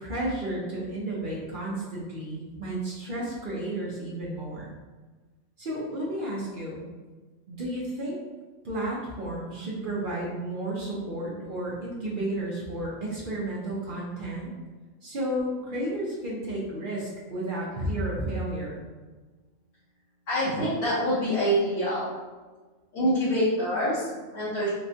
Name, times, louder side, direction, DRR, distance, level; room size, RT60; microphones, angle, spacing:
voice 1, 0.0-4.7 5.6-6.8 7.5-8.2 8.6-14.5 15.0-18.8, right 1 dB, 50° right, -5 dB, 0.7 m, -32 dB
voice 2, 20.3-22.2 22.9-24.7, equal, 70° left, -13 dB, 1.5 m, -26 dB
4.2 x 2.3 x 2.7 m, 1.3 s
omnidirectional pair, 1.3 m